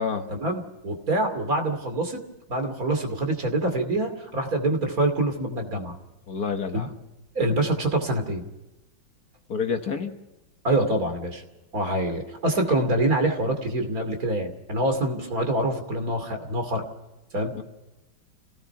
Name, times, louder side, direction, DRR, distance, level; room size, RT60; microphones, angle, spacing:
voice 1, 0.3-2.2 2.5-5.9 6.7-6.9 7.3-8.4 10.6-11.4 11.7-16.8 17.3-17.5, right 1 dB, 45° right, 6 dB, 3.1 m, -25 dB
voice 2, 6.3-6.9 9.5-10.1 17.5-17.6, left 6 dB, 55° left, 6 dB, 1.6 m, -28 dB
27.0 x 17.5 x 5.8 m, 1.0 s
omnidirectional pair, 2.1 m